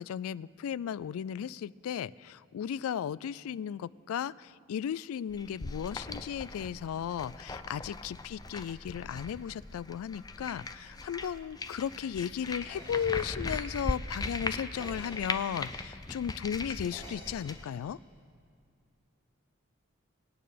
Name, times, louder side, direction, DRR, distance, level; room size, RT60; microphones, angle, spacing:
voice 1, 0.0-18.0, left 8 dB, 90° left, 20 dB, 0.3 m, -35 dB
sound 1, 5.3-17.7, left 3 dB, 20° left, 0.5 m, -39 dB
voice 2, 10.8-11.1, left 1 dB, 55° left, -2 dB, 1.7 m, -67 dB
sound 2, 12.7-16.2 16.9-18.2, right 1 dB, 25° right, 2.9 m, -53 dB
24.5 x 8.8 x 5.1 m, 2.2 s
head